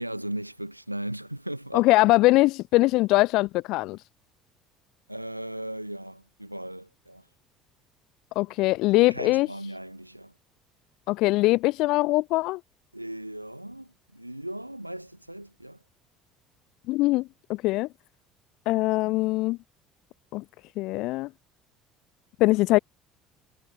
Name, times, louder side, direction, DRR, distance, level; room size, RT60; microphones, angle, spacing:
voice 1, 0.0-1.9 5.1-7.3 9.0-10.3 12.9-15.8, right 1 dB, 90° right, 1.8 m, -37 dB
voice 2, 1.7-4.0 8.4-9.5 11.1-12.6 16.9-17.9 18.7-19.6 20.3-20.4 20.8-21.3 22.4-22.8, left 20 dB, 55° left, 0.4 m, -22 dB
figure-of-eight pair, 60°, 0 cm